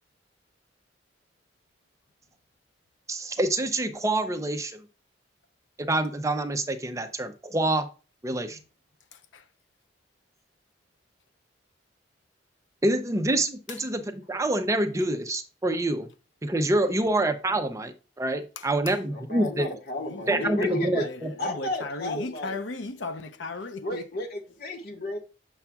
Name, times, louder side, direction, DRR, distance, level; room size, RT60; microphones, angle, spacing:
voice 1, 3.1-4.8 5.8-7.9 8.2-8.6 12.8-16.1 16.4-19.7 20.3-21.3, right 1 dB, 15° right, 0.6 m, -26 dB
voice 2, 18.6-18.9 20.0-24.0, left 3 dB, 85° left, 0.7 m, -37 dB
voice 3, 19.1-21.1 21.4-22.6 23.8-25.2, left 1 dB, 60° left, 1.4 m, -33 dB
7.1 x 6.9 x 2.3 m
head